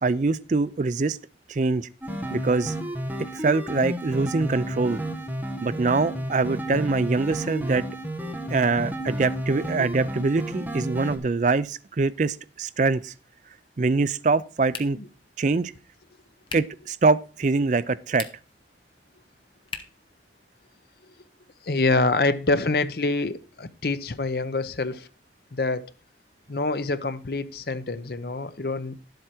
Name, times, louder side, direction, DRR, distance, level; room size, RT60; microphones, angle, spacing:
voice 1, 0.0-1.2 1.5-1.9 2.3-2.7 3.2-5.0 5.6-7.9 8.5-13.1 13.8-15.0 15.4-15.7 16.5-18.3, right 3 dB, 40° right, 0.4 m, -24 dB
sound 1, 2.0-11.2, right 1 dB, 10° right, 1.5 m, -32 dB
sound 2, 14.7-15.2 16.5-16.8 18.0-18.6 19.7-20.1, left 5 dB, 30° left, 0.9 m, -38 dB
voice 2, 21.6-25.1 25.5-25.9 26.5-29.0, left 3 dB, 60° left, 0.7 m, -26 dB
11.5 x 7.9 x 4.4 m
head